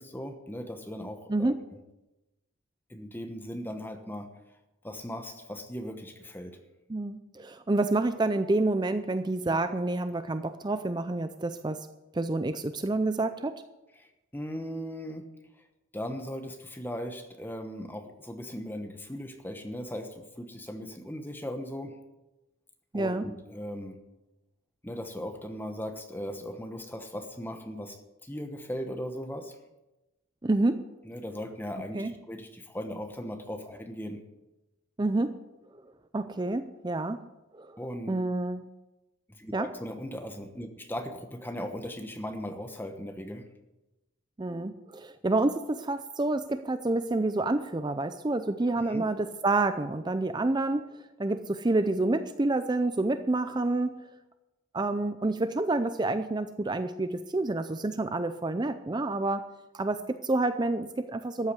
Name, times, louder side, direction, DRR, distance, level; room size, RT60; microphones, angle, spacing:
voice 1, 0.0-1.8 2.9-4.3 4.8-6.6 14.0-15.3 15.9-22.0 22.9-24.0 24.8-29.6 31.0-34.2 37.8-38.3 39.3-43.5 48.8-49.0, equal, 10° left, 6 dB, 1.0 m, -38 dB
voice 2, 6.9-11.9 12.1-13.6 22.9-23.3 30.4-30.8 31.9-32.1 35.0-35.4 36.1-37.2 37.5-37.8 38.1-38.6 39.5-39.7 44.4-50.8 51.2-53.9 54.7-59.4 59.7-61.5, right 2 dB, 20° right, 10 dB, 0.5 m, -28 dB
13.5 x 8.4 x 8.1 m, 1.0 s
head